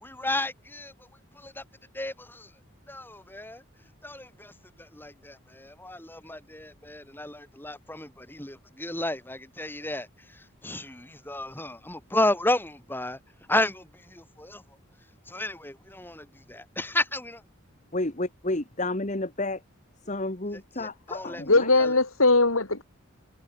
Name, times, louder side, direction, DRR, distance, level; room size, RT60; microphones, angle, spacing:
voice 1, 0.0-1.1 1.3-1.6 1.9-2.5 2.9-3.6 4.0-4.5 4.8-13.2 13.5-14.6 15.3-17.4 20.8-21.4 21.8-21.9, left 1 dB, 10° left, 4.8 m, -32 dB
voice 2, 17.9-19.6 20.0-21.7, left 2 dB, 35° left, 1.7 m, -31 dB
voice 3, 21.4-22.8, left 2 dB, 80° left, 4.7 m, -20 dB
head